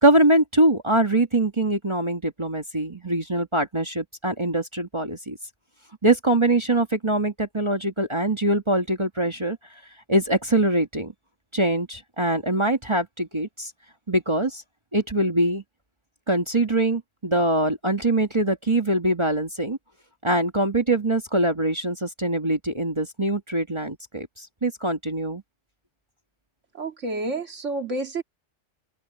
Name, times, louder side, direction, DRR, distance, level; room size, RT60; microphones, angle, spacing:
voice 1, 0.0-5.4 6.0-9.6 10.1-11.1 11.5-13.7 14.1-14.6 14.9-15.6 16.3-19.8 20.2-25.4, right 1 dB, 25° right, 1.6 m, -23 dB
voice 2, 26.7-28.2, right 2 dB, 90° right, 2.5 m, -29 dB
open air
omnidirectional pair, 1.2 m